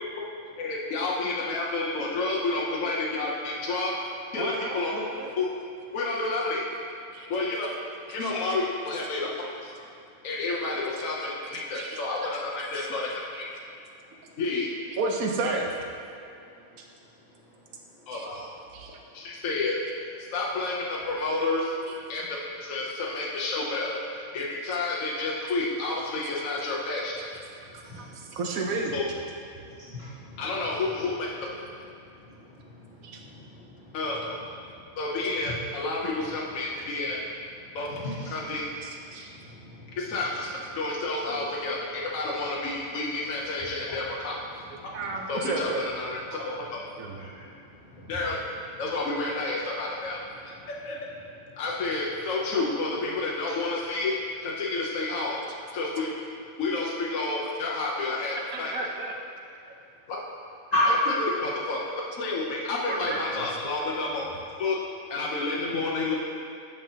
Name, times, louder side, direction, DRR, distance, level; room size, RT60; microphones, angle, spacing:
voice 1, 0.6-3.9 4.3-5.1 5.4-5.5 5.9-6.7 7.3-7.7 8.1-9.3 9.6-9.7 10.2-13.1 13.4-13.5 14.4-14.7 18.1-18.5 19.1-19.8 20.3-21.7 22.1-27.1 28.9-29.0 30.4-31.3 33.9-34.4 34.9-37.2 37.7-37.9 38.3-38.7 40.0-44.4 45.3-45.7 46.0-46.8 48.1-48.4 48.8-50.2 50.7-51.0 51.6-54.1 54.4-55.4 55.7-56.1 56.6-58.7 60.1-60.2 61.4-61.8 62.2-64.2 64.6-64.8 65.1-66.2, left 3 dB, 75° left, -4 dB, 1.1 m, -30 dB
voice 2, 4.4-5.3 7.1-7.5 8.2-8.3 9.2-9.4 11.5-12.0 12.3-12.4 12.7-12.9 13.3-13.4 14.4-14.5 14.9-15.7 18.1-18.3 18.7-19.0 21.9-22.3 27.2-27.3 27.7-29.1 33.0-33.2 38.8-39.3 44.9-45.9 46.3-46.5 47.0-47.3 52.5-52.7 55.5-55.6 58.5-59.2 61.3-61.4 62.9-63.5 64.1-64.3, right 3 dB, 90° right, 1 dB, 1.2 m, -33 dB
voice 3, 17.2-18.1 19.1-19.2 27.5-28.4 29.5-30.8 31.9-34.2 34.6-35.0 35.4-35.5 36.2-36.3 36.7-37.1 37.5-40.1 41.4-41.5 42.6-42.8 43.5-45.0 46.3-48.4 48.7-48.8 50.2-50.7 60.7-60.9, left 2 dB, 45° left, -15 dB, 1.9 m, -38 dB
8.9 x 5.6 x 2.8 m, 2.5 s
omnidirectional pair, 1.4 m